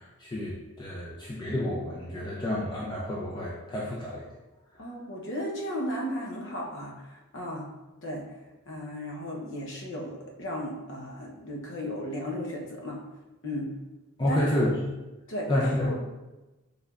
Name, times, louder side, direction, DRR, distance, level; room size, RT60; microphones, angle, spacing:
voice 1, 0.2-4.2 14.2-14.7 15.5-15.9, left 1 dB, 20° left, -6 dB, 0.5 m, -29 dB
voice 2, 4.8-7.7 8.0-8.2 8.7-13.0 13.4-13.7 14.3-14.4 15.3-16.0, equal, 60° left, -1 dB, 0.8 m, -35 dB
4.7 x 3.4 x 2.4 m, 1.1 s
head